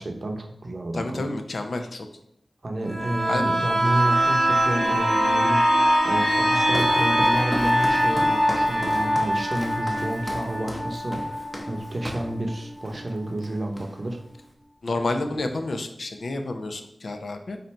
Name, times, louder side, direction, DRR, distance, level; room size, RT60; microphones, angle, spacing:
voice 1, 0.0-1.2 2.6-5.6 6.0-14.2 15.3-15.4, right 1 dB, 55° right, 2 dB, 0.7 m, -30 dB
voice 2, 0.9-2.1 3.3-3.5 14.8-17.6, left 2 dB, 80° left, 6 dB, 0.5 m, -29 dB
sound 1, 2.9-12.4 12.8-12.9, equal, 30° left, 1.5 m, -23 dB
Walk footsteps, 6.4-12.4 12.8-13.1 13.4-14.2, equal, 10° left, 0.7 m, -36 dB
4.1 x 2.6 x 4.4 m, 0.73 s
wide cardioid pair, 65°, 0 cm